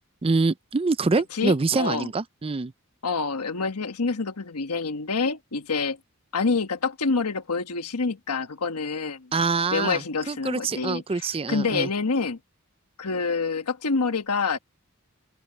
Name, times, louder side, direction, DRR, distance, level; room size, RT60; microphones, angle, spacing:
voice 1, 0.2-2.7 9.3-10.0 10.3-11.9, right 4 dB, 25° right, 0.4 m, -25 dB
voice 2, 1.3-2.1 3.0-6.0 6.3-9.3 9.7-12.4 13.0-14.6, left 4 dB, 85° left, 1.3 m, -27 dB
open air
head